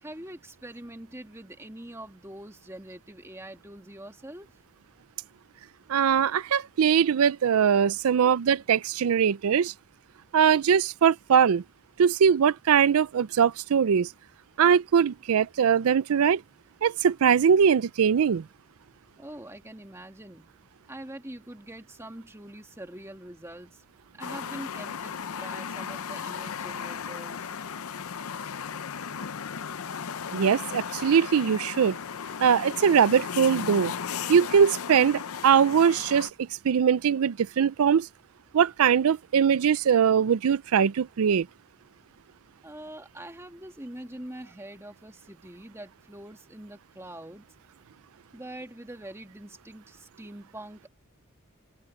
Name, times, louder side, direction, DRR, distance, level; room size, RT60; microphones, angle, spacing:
voice 1, 0.0-4.5 19.2-20.5 20.9-23.8 24.2-27.5 42.6-47.5 48.3-50.9, right 1 dB, 10° right, 2.4 m, -44 dB
voice 2, 5.9-9.7 10.3-11.6 12.0-14.1 14.6-16.4 16.8-18.4 30.3-32.0 32.4-33.9 34.3-38.1 38.5-41.5, right 7 dB, 75° right, 0.4 m, -21 dB
sound 1, 24.2-36.3, left 7 dB, 75° left, 0.6 m, -36 dB
open air
head